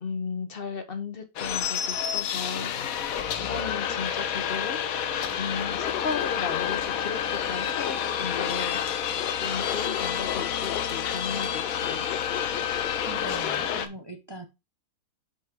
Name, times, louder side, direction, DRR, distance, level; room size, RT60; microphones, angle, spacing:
voice 1, 0.0-3.1 3.4-4.8 5.4-9.0 9.3-12.1, left 5 dB, 40° left, 1.2 m, -36 dB
sound 1, 1.4-13.9, left 8 dB, 65° left, 1.1 m, -29 dB
Laughter, 5.6-13.9, left 12 dB, 85° left, 1.2 m, -36 dB
sound 2, 8.0-13.4, left 1 dB, 15° left, 1.6 m, -52 dB
voice 2, 13.0-14.5, right 2 dB, 40° right, 0.3 m, -40 dB
5.4 x 5.2 x 4.6 m
omnidirectional pair, 1.7 m